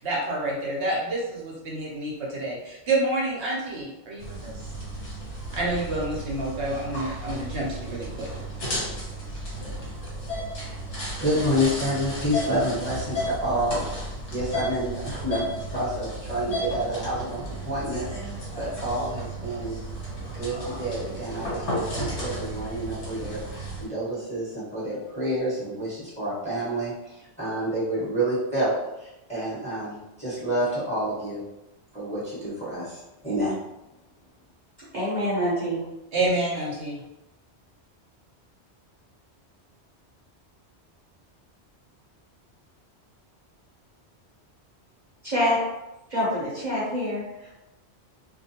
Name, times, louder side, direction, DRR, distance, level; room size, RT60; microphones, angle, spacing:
voice 1, 0.0-4.6 5.5-8.3 36.1-37.0, right 2 dB, 75° right, -4 dB, 0.9 m, -28 dB
sound 1, 4.2-23.8, equal, 85° left, 1.3 m, -33 dB
voice 2, 10.9-13.8 14.3-19.8 20.3-31.4 31.9-33.5, equal, 5° left, -11 dB, 1.1 m, -29 dB
voice 3, 34.9-35.8 45.2-45.6 46.1-47.5, equal, 45° right, -9 dB, 0.9 m, -26 dB
2.4 x 2.1 x 2.7 m, 0.96 s
omnidirectional pair, 1.2 m